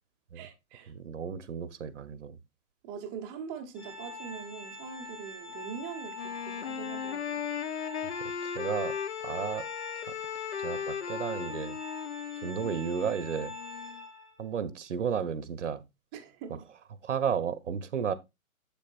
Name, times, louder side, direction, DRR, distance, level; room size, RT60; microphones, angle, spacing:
voice 1, 0.3-0.9 2.8-7.4 16.1-16.6, right 7 dB, 10° right, 0.6 m, -42 dB
voice 2, 0.9-2.4 8.0-9.0 9.2-9.7 10.1-10.2 10.6-11.8 12.4-13.5 14.4-15.8 17.0-18.1, right 7 dB, 55° right, 0.8 m, -33 dB
Organ, 3.8-14.5, left 2 dB, 85° left, 3.5 m, -44 dB
Wind instrument woodwind instrument, 6.1-14.0, left 8 dB, 50° left, 0.5 m, -37 dB
7.5 x 6.9 x 2.5 m
figure-of-eight pair, 135°, 42 cm